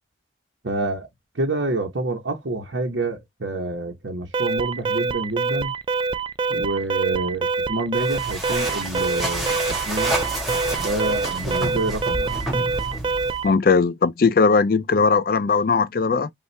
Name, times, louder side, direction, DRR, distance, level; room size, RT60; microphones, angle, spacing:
voice 1, 0.6-1.1 1.3-5.7 6.5-10.2 10.8-12.4, right 2 dB, 85° right, 1.0 m, -27 dB
Alarm, 4.3-13.5, right 4 dB, 25° right, 0.3 m, -25 dB
sound 1, 7.9-13.5, right 1 dB, ahead, 1.6 m, -29 dB
voice 2, 13.4-16.3, left 4 dB, 50° left, 0.4 m, -19 dB
5.3 x 2.4 x 3.3 m
head